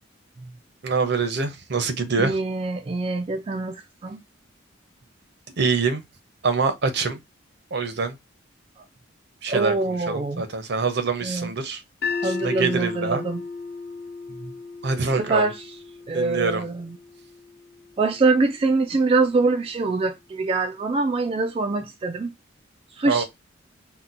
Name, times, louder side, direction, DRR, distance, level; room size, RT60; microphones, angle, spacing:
voice 1, 0.8-2.4 5.6-6.0 6.4-7.2 7.7-8.1 9.4-11.8 12.2-13.2 14.8-15.5 16.1-16.6 23.0-23.2, right 4 dB, 60° right, 0.7 m, -25 dB
voice 2, 2.2-4.2 8.8-8.9 9.5-10.4 11.2-11.5 12.2-13.4 14.4-14.5 15.2-15.6 16.1-17.0 18.0-22.3 23.0-23.2, right 3 dB, 30° right, 0.3 m, -24 dB
sound 1, 12.0-18.2, left 4 dB, 55° left, 0.8 m, -35 dB
2.8 x 2.2 x 3.9 m
head